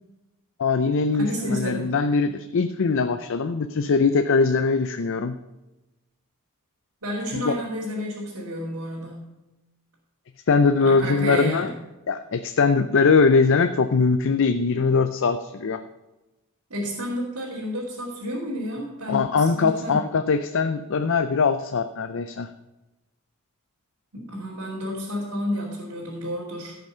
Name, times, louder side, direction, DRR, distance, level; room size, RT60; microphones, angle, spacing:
voice 1, 0.6-5.4 7.3-7.6 10.5-11.7 12.1-15.8 19.1-22.5, left 4 dB, 60° left, 9 dB, 0.5 m, -21 dB
voice 2, 1.2-1.9 7.0-9.3 10.8-11.8 16.7-20.0 24.1-26.8, equal, 85° right, -6 dB, 2.8 m, -30 dB
15.5 x 5.8 x 5.6 m, 1.0 s
head